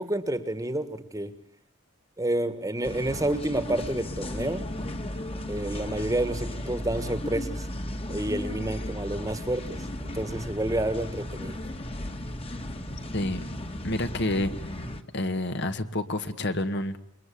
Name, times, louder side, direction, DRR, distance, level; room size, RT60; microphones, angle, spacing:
voice 1, 0.0-1.3 2.2-4.7 5.5-7.7 8.1-9.8 10.1-11.6, right 1 dB, 15° right, 12 dB, 1.6 m, -29 dB
sound 1, 2.8-15.0, left 1 dB, 30° left, 1.8 m, -35 dB
voice 2, 13.8-14.8 15.1-17.0, left 1 dB, 55° left, 9 dB, 1.8 m, -29 dB
28.0 x 22.5 x 8.6 m, 0.67 s
head